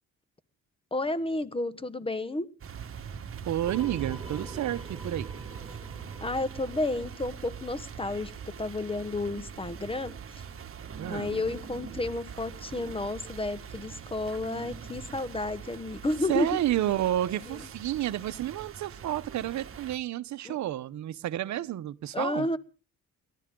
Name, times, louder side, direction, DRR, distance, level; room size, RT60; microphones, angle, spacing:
voice 1, 0.9-2.5 6.2-8.3 8.6-10.1 11.1-16.5 20.4-20.6 22.1-22.6, left 2 dB, 20° left, 1.3 m, -31 dB
sound 1, 2.6-20.0, right 7 dB, 45° right, 1.6 m, -42 dB
voice 2, 3.4-5.3 11.0-11.3 16.3-22.5, right 13 dB, 70° right, 0.9 m, -30 dB
sound 2, 3.7-8.1, right 2 dB, 20° right, 6.0 m, -46 dB
29.5 x 12.5 x 3.8 m
cardioid pair, 90°, 30 cm